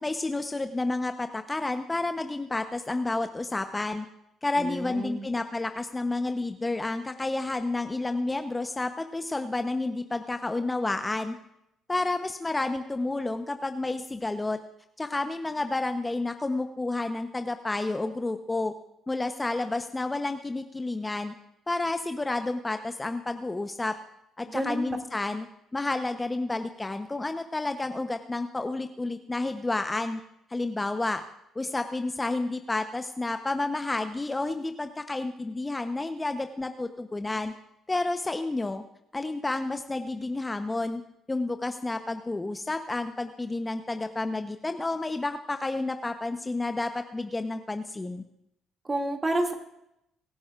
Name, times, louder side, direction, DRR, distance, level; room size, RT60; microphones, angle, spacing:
voice 1, 0.0-4.1 4.4-11.3 11.9-14.6 15.0-18.7 19.1-21.3 21.7-23.9 24.4-25.5 25.7-30.2 30.5-31.2 31.5-37.5 37.9-38.8 39.1-41.0 41.3-48.2, left 2 dB, 20° left, 7 dB, 0.9 m, -30 dB
voice 2, 4.6-5.3 24.5-24.8 48.8-49.5, right 1 dB, 25° right, 2 dB, 2.4 m, -29 dB
23.0 x 10.5 x 2.5 m, 0.81 s
hypercardioid pair, 55°, 0 cm